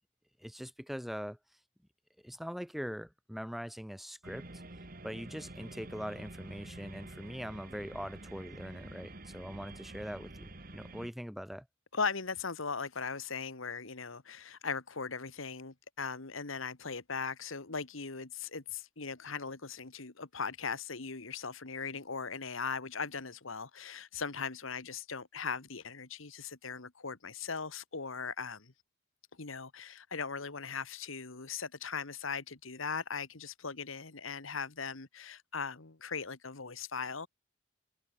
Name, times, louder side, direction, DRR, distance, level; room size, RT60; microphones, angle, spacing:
voice 1, 0.4-1.4 2.2-4.6 5.0-11.7, equal, ahead, 4.5 m, -42 dB
sound 1, 4.2-11.1, right 2 dB, 45° right, 2.2 m, -48 dB
voice 2, 11.9-28.7 29.4-37.3, left 5 dB, 80° left, 1.7 m, -39 dB
open air
head